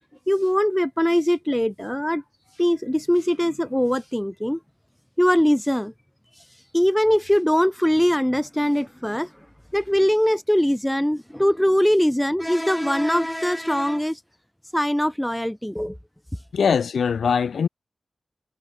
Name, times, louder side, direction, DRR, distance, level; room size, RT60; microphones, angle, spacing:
voice 1, 0.3-2.2 2.6-4.6 5.2-5.9 6.7-9.3 9.7-14.2 14.7-16.0, equal, 5° left, 0.9 m, -21 dB
voice 2, 16.5-17.7, left 6 dB, 90° left, 2.0 m, -21 dB
cardioid pair, 55°, 0 cm